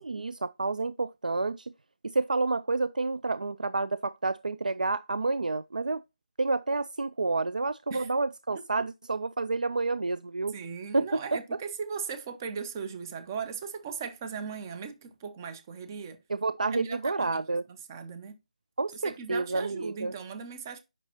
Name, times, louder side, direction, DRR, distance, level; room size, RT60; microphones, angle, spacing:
voice 1, 0.0-1.7 2.0-6.0 6.4-10.6 10.9-11.4 16.3-17.6 18.8-20.1, right 3 dB, 75° right, 0.4 m, -29 dB
voice 2, 10.5-16.2 16.7-17.4 17.9-18.4 18.9-20.8, right 6 dB, 25° right, 1.0 m, -38 dB
8.6 x 6.2 x 2.7 m
figure-of-eight pair, 155°, 4 cm